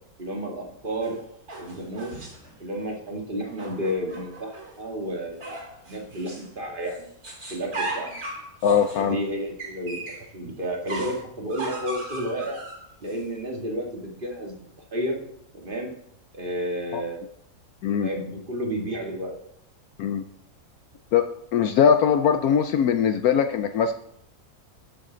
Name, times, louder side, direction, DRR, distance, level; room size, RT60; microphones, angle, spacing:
voice 1, 0.2-1.2 1.6-2.3 2.6-5.6 5.9-7.1 7.5-8.2 9.0-10.0 10.3-12.6 13.0-14.5 14.9-15.2 15.5-15.9 16.3-17.3 18.0-19.3, equal, 35° right, 0 dB, 1.9 m, -31 dB
sound 1, 1.0-2.5 3.4-4.8 5.4-6.5 6.8-10.3 10.9-13.2, right 2 dB, 55° right, 3.8 m, -37 dB
voice 2, 8.6-9.2 16.9-17.0 17.8-18.1 20.0-20.2 21.1-23.9, left 7 dB, 75° left, 8 dB, 1.1 m, -21 dB
13.0 x 6.6 x 3.9 m, 0.72 s
omnidirectional pair, 1.7 m